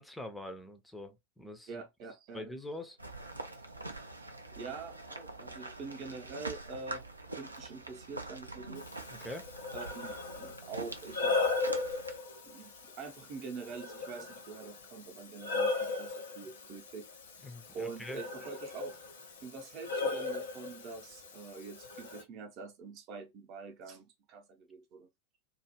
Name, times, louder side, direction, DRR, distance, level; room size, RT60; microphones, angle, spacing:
voice 1, 0.0-1.8 2.3-3.0 9.1-9.5 16.4-16.5 17.4-18.2, left 1 dB, 5° left, 0.5 m, -44 dB
voice 2, 1.7-2.4 4.5-7.0 7.3-8.9 9.7-11.7 12.4-17.1 17.7-19.0 19.4-25.1, right 4 dB, 40° right, 0.7 m, -45 dB
sound 1, 3.0-12.2, right 2 dB, 85° right, 0.4 m, -45 dB
Breathing, 8.8-22.2, left 3 dB, 60° left, 0.6 m, -37 dB
2.3 x 2.0 x 2.9 m
figure-of-eight pair, 90°, 0 cm